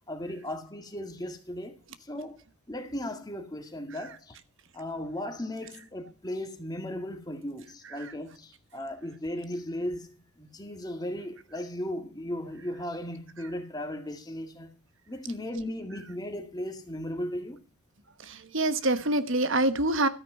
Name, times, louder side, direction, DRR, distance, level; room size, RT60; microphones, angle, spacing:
voice 1, 0.1-4.4 4.7-14.7 15.1-17.6, left 1 dB, 15° left, 1.9 m, -36 dB
voice 2, 18.2-20.1, right 2 dB, 55° right, 1.2 m, -26 dB
13.0 x 9.2 x 5.5 m
head